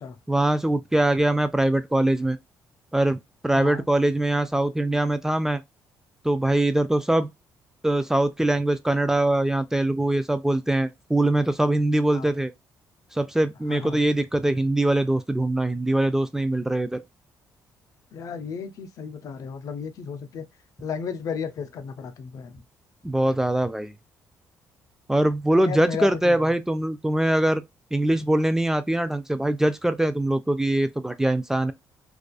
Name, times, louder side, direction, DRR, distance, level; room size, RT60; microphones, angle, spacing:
voice 1, 0.3-2.4 2.9-5.6 6.2-7.3 7.8-12.5 13.1-17.0 23.0-23.9 25.1-27.6 27.9-31.7, right 1 dB, 5° right, 0.3 m, -22 dB
voice 2, 3.5-3.9 12.1-12.3 13.7-14.1 18.1-20.5 20.8-22.6 25.5-26.5, left 6 dB, 60° left, 0.5 m, -34 dB
2.4 x 2.3 x 2.3 m
supercardioid pair, 75°, 6 cm